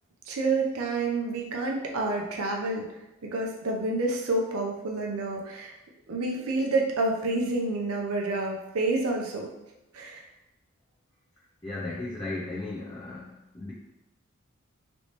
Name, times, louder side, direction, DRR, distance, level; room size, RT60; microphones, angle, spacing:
voice 1, 0.3-2.9 3.2-5.7 6.1-9.5 9.9-10.2, right 2 dB, 85° right, 0 dB, 0.6 m, -28 dB
voice 2, 11.6-13.7, left 2 dB, 20° left, -7 dB, 0.5 m, -36 dB
3.1 x 2.8 x 3.2 m, 0.95 s
head